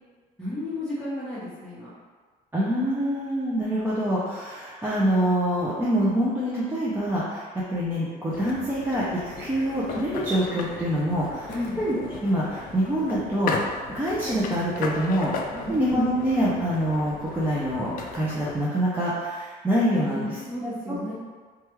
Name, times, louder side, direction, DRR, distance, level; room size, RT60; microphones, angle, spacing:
voice 1, 0.4-1.9 11.5-11.8 15.5-15.8 20.0-21.1, left 1 dB, 5° left, -12 dB, 0.9 m, -33 dB
voice 2, 2.5-11.5 11.8-13.6 13.9-15.3 15.7-20.4 20.6-21.0, equal, 10° right, -8 dB, 0.5 m, -25 dB
sound 1, 8.3-18.7, left 4 dB, 55° left, 0.4 m, -36 dB
3.1 x 2.3 x 3.0 m, 1.5 s
cardioid pair, 110°, 17 cm